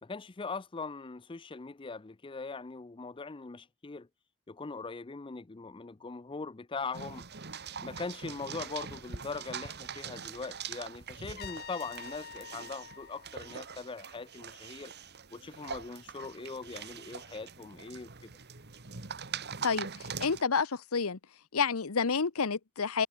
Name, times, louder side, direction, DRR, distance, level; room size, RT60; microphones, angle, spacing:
voice 1, 0.0-4.1 4.5-7.3 7.8-14.9 15.3-18.3, left 4 dB, 20° left, 0.5 m, -41 dB
sound 1, 6.9-20.4, right 6 dB, 45° right, 2.0 m, -43 dB
Trumpet, 11.4-14.3, left 7 dB, 45° left, 3.8 m, -48 dB
voice 2, 19.6-21.2 21.5-23.1, left 5 dB, 75° left, 0.9 m, -29 dB
head